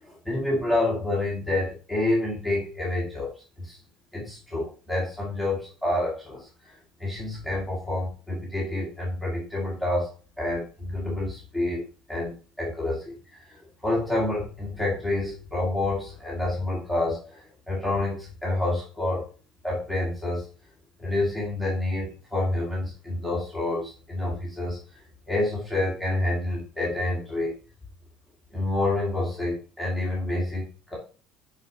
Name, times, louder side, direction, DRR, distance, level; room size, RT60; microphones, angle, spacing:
voice 1, 0.0-3.3 3.6-3.8 4.1-10.1 10.4-11.8 12.1-19.3 19.6-20.5 21.0-24.8 25.3-27.5 28.5-30.9, left 2 dB, 5° right, -6 dB, 1.8 m, -28 dB
6.5 x 4.9 x 3.0 m, 0.36 s
cardioid pair, 175°, 0 cm